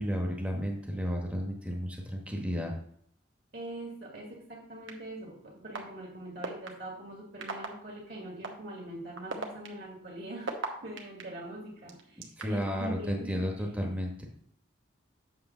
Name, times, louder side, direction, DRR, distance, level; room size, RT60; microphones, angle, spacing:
voice 1, 0.0-2.7 12.4-14.3, equal, 5° right, 0 dB, 1.1 m, -32 dB
voice 2, 3.5-10.5 10.8-13.4, right 1 dB, 55° right, -2 dB, 1.8 m, -42 dB
sound 1, 4.9-5.0 5.7-5.8 6.4-6.7 7.4-7.7 8.4-8.5 9.2-11.2 11.9-12.7, right 4 dB, 80° right, 1.1 m, -35 dB
7.8 x 3.3 x 6.0 m, 0.65 s
head